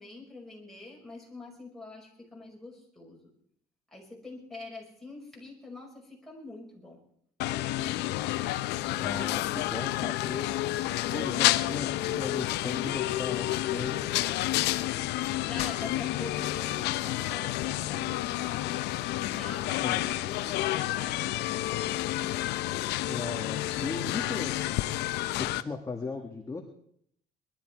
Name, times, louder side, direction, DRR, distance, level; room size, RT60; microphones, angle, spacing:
voice 1, 0.0-3.3 3.9-7.0 14.6-18.8 19.2-22.1, left 2 dB, ahead, -2 dB, 5.6 m, -45 dB
sound 1, 7.4-25.6, left 15 dB, 80° left, 0.6 m, -30 dB
voice 2, 8.9-14.1 15.9-16.0 19.8-20.1 23.0-24.8 25.3-26.6, left 4 dB, 20° left, 2 dB, 1.8 m, -37 dB
21.0 x 12.0 x 4.6 m, 0.67 s
cardioid pair, 110°, 17 cm